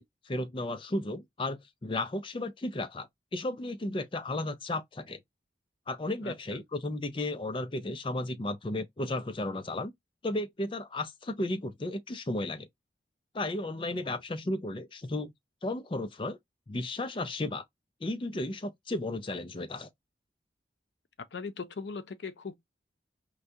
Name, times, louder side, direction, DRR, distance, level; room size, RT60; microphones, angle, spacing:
voice 1, 0.0-5.2 5.9-9.9 10.2-12.7 13.3-15.3 15.6-16.4 16.7-17.6 18.0-19.9, left 2 dB, 30° left, 0.4 m, -34 dB
voice 2, 6.2-6.6 13.9-14.0 21.3-22.6, left 4 dB, 80° left, 0.5 m, -40 dB
4.7 x 2.2 x 2.6 m
head